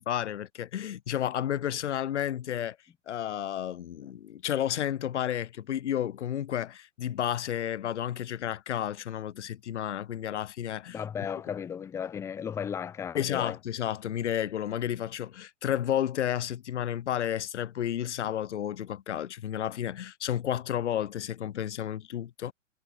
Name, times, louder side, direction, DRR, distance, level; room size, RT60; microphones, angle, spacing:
voice 1, 0.0-2.8 3.1-11.0 13.1-22.5, left 10 dB, 65° left, 0.6 m, -31 dB
voice 2, 10.9-13.6, left 8 dB, 5° left, 0.6 m, -35 dB
figure-of-eight pair, 120°, 38 cm